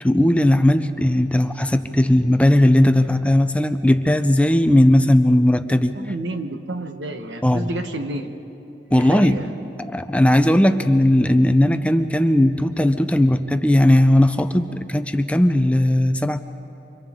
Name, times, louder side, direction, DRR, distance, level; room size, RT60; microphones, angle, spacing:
voice 1, 0.0-6.0 7.4-7.7 8.9-9.4 9.9-16.4, left 1 dB, 5° left, 9 dB, 0.5 m, -17 dB
voice 2, 5.9-8.3 8.9-9.5, right 2 dB, 85° right, 6 dB, 1.3 m, -30 dB
29.5 x 25.5 x 3.7 m, 2.9 s
head